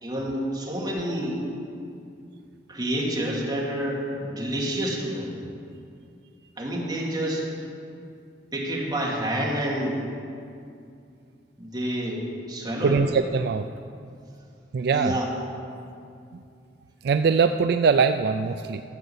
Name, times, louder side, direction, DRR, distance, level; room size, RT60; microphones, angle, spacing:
voice 1, 0.0-1.4 2.7-5.3 6.6-7.5 8.5-10.0 11.6-13.0 14.9-15.3, equal, 25° right, -4 dB, 2.4 m, -28 dB
voice 2, 12.8-13.7 14.7-15.2 17.0-18.8, right 5 dB, 65° right, 9 dB, 0.4 m, -22 dB
13.5 x 6.7 x 8.0 m, 2.5 s
head